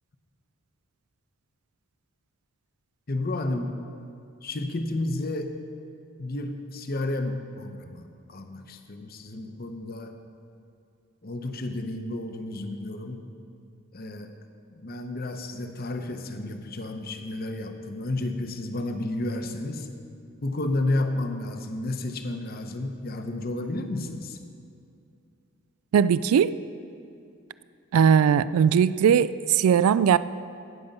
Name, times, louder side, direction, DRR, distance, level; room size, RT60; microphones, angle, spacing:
voice 1, 3.1-3.7 4.4-5.5 6.2-10.2 11.2-13.2 13.9-14.3 14.7-19.9 20.4-24.4, left 2 dB, 45° left, 6 dB, 0.8 m, -31 dB
voice 2, 25.9-26.5 27.9-30.2, right 7 dB, 90° right, 17 dB, 0.3 m, -19 dB
17.5 x 6.9 x 5.4 m, 2.5 s
head